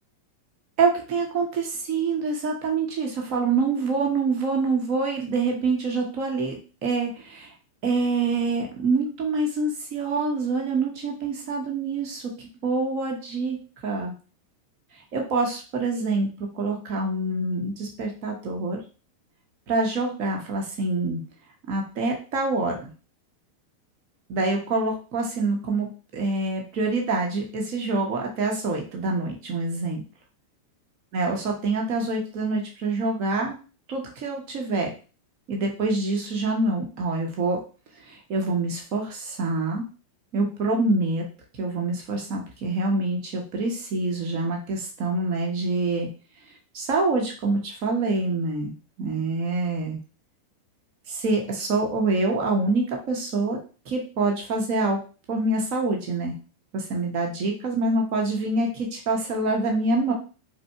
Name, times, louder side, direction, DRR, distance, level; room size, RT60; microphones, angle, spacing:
voice 1, 0.8-7.5 7.8-14.1 15.1-16.3 16.5-18.8 19.7-21.2 21.7-22.9 24.3-30.0 31.1-33.5 33.9-34.9 35.5-37.6 38.0-39.8 40.3-41.2 41.6-46.1 46.7-50.0 51.1-55.0 55.3-56.3 56.7-60.1, right 3 dB, 40° right, 1 dB, 0.9 m, -26 dB
5.0 x 2.0 x 3.5 m, 0.36 s
figure-of-eight pair, 90°, 0 cm